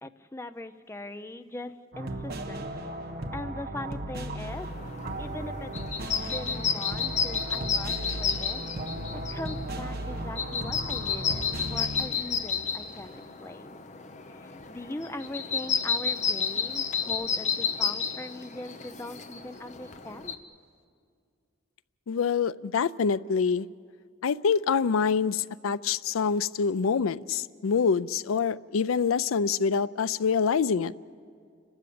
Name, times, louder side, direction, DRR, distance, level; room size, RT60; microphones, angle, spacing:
voice 1, 0.0-2.7 3.3-4.7 5.2-5.7 6.2-8.6 9.1-11.4 11.7-13.8 14.3-20.3, left 1 dB, 10° left, 10 dB, 0.5 m, -41 dB
sound 1, 1.9-12.1, right 1 dB, 50° right, 1.2 m, -36 dB
sound 2, 4.5-20.4, left 6 dB, 35° left, 0.9 m, -32 dB
voice 2, 22.1-23.7 24.2-30.9, left 6 dB, 85° left, 18 dB, 0.4 m, -26 dB
29.5 x 13.0 x 8.5 m, 2.2 s
head